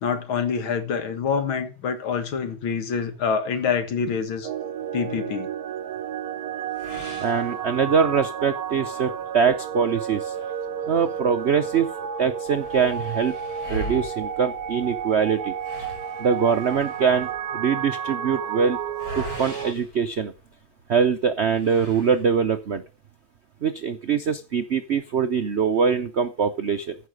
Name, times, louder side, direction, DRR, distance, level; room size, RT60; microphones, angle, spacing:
voice 1, 0.0-4.5 4.9-5.5 10.4-10.5, left 6 dB, 85° left, 2.4 m, -26 dB
sound 1, 4.4-19.7, right 8 dB, 60° right, 1.1 m, -31 dB
sound 2, 6.7-8.2 8.7-8.8 9.2-9.3 10.1-11.4 11.8-11.9 12.1-20.8 21.5-22.6, equal, 45° left, 4.0 m, -41 dB
voice 2, 7.2-10.3 10.9-11.9 12.2-13.3 13.7-15.5 16.2-17.3 17.5-18.8 19.2-20.3 20.9-22.8 23.6-26.9, right 6 dB, 80° right, 0.6 m, -23 dB
14.5 x 5.7 x 6.4 m
omnidirectional pair, 2.2 m